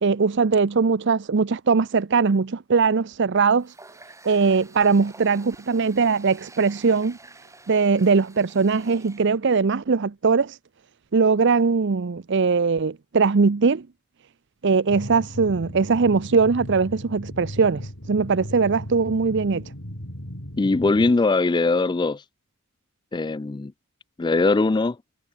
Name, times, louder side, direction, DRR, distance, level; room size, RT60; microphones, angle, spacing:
voice 1, 0.0-3.7 4.2-7.2 7.7-10.6 11.1-13.9 14.6-19.6, right 4 dB, 60° right, 0.6 m, -21 dB
Water tap faucet, 3.6-9.4, right 2 dB, 15° right, 7.8 m, -49 dB
sound 1, 14.9-21.1, equal, 70° left, 6.9 m, -37 dB
voice 2, 20.6-22.2 23.1-23.7 24.2-25.0, left 3 dB, 20° left, 0.4 m, -21 dB
head